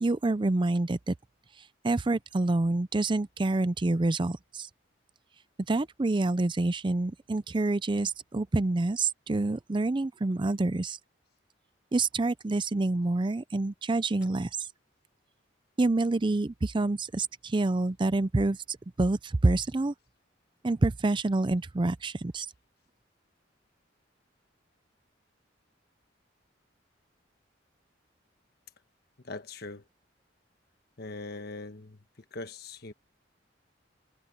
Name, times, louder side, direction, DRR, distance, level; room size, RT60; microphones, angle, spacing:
voice 1, 0.0-1.1 1.6-4.7 5.7-11.0 11.9-14.7 15.8-19.9 20.6-22.5, right 2 dB, 25° right, 0.5 m, -27 dB
voice 2, 29.2-29.8 31.0-32.0 32.3-32.9, left 3 dB, 55° left, 1.4 m, -41 dB
head